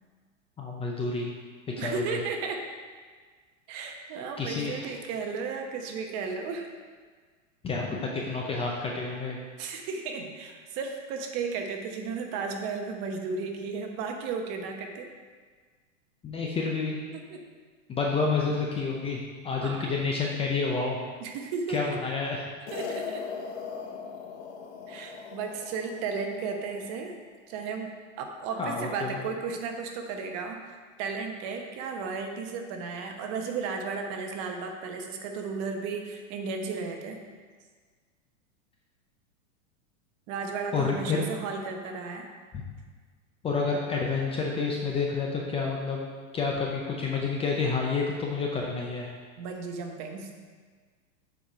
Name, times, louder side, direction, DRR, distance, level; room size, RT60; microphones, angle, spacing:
voice 1, 0.6-1.3 1.8-2.2 4.4-4.9 7.6-9.4 16.2-17.0 17.9-21.0 21.7-22.4 28.6-29.2 40.7-41.2 43.4-46.0 46.3-49.1, left 4 dB, 15° left, -1 dB, 0.5 m, -29 dB
voice 2, 1.8-2.6 3.7-6.7 9.6-15.1 17.1-17.4 19.6-19.8 21.2-22.0 22.7-23.2 24.9-27.2 27.5-27.9 28.2-37.2 40.3-42.3 49.4-50.3, right 5 dB, 40° right, 3 dB, 1.0 m, -34 dB
sound 1, 22.7-27.1, left 6 dB, 60° left, 1.0 m, -39 dB
7.1 x 4.7 x 5.1 m, 1.5 s
supercardioid pair, 140°, 39 cm